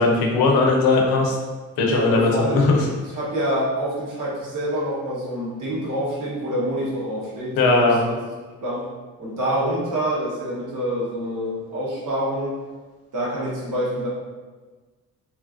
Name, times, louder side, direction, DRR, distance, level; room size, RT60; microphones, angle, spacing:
voice 1, 0.0-1.4 1.8-2.8 7.6-8.0, left 3 dB, 90° left, 0 dB, 0.6 m, -18 dB
voice 2, 1.8-2.7 3.1-8.1 8.6-8.9 9.2-12.6 13.1-14.1, equal, 60° right, -6 dB, 1.1 m, -26 dB
3.0 x 2.4 x 2.3 m, 1.3 s
cardioid pair, 105°, 35 cm